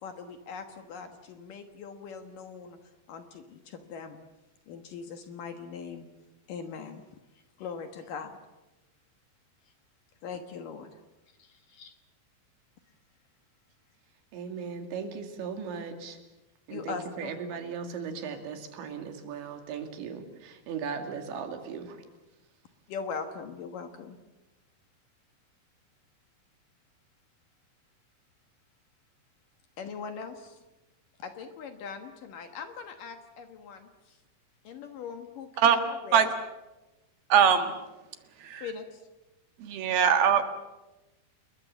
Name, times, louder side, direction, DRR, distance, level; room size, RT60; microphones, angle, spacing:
voice 1, 0.0-2.8 3.1-4.2 4.7-6.1 6.5-7.0 7.6-8.4 10.2-11.0 11.4-11.9 16.7-17.4 22.9-24.2 29.8-30.6 31.2-34.2 34.6-36.3 38.6-39.0, left 6 dB, 60° left, 7 dB, 2.5 m, -41 dB
voice 2, 14.3-16.2 16.7-22.0, right 6 dB, 90° right, 5 dB, 4.8 m, -37 dB
voice 3, 37.3-37.7 38.4-38.7 39.6-40.4, right 8 dB, 65° right, 7 dB, 3.2 m, -21 dB
30.0 x 21.0 x 7.2 m, 1.1 s
omnidirectional pair, 5.1 m